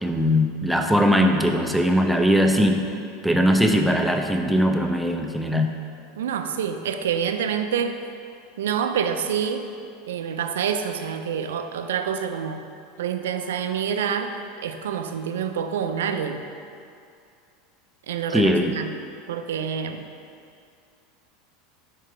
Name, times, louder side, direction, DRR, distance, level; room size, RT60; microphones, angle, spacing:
voice 1, 0.0-2.8 3.2-5.7 18.3-18.7, equal, ahead, 3 dB, 0.5 m, -20 dB
voice 2, 6.2-8.0 8.6-9.6 10.1-12.6 13.0-14.3 14.6-16.4 18.1-18.9 19.3-20.0, right 7 dB, 85° right, 8 dB, 0.4 m, -27 dB
4.6 x 4.6 x 4.9 m, 2.4 s
hypercardioid pair, 100°, 0 cm